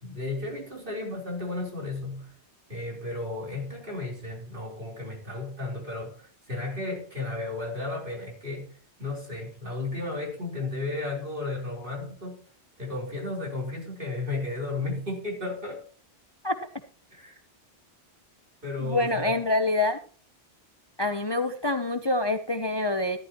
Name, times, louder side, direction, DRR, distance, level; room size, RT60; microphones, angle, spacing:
voice 1, 0.0-2.3 2.7-12.4 12.8-15.8 17.1-17.4 18.6-19.4, left 2 dB, 50° right, 4.2 m, -34 dB
voice 2, 18.8-20.0 21.0-23.2, left 2 dB, 25° left, 0.7 m, -26 dB
14.0 x 12.0 x 3.0 m
omnidirectional pair, 1.1 m